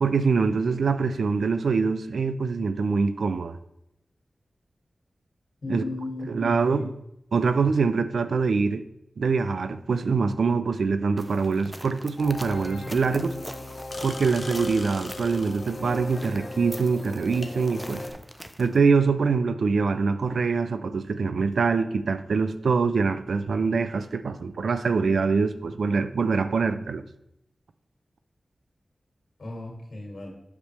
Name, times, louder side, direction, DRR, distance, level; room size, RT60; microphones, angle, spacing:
voice 1, 0.0-3.6 5.7-5.8 6.3-6.9 7.3-8.8 9.2-13.4 14.0-18.0 18.6-27.0, right 4 dB, 85° right, 0.4 m, -24 dB
voice 2, 5.6-6.9 29.4-30.3, left 2 dB, 70° left, 2.4 m, -35 dB
sound 1, 11.2-18.8, equal, 10° right, 0.6 m, -44 dB
sound 2, 12.2-18.1, left 2 dB, 50° left, 0.9 m, -37 dB
8.0 x 6.6 x 3.3 m
cardioid pair, 60°, 0 cm